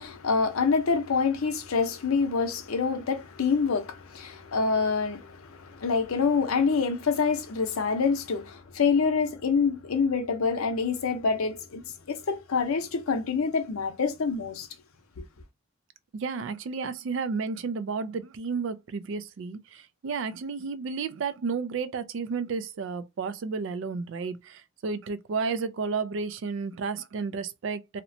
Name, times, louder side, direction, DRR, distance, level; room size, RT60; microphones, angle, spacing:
voice 1, 0.0-11.8 12.1-14.7 15.2-15.3, left 5 dB, 90° left, 0.6 m, -26 dB
voice 2, 16.1-28.0, right 5 dB, 60° right, 0.3 m, -32 dB
2.8 x 2.1 x 2.6 m
head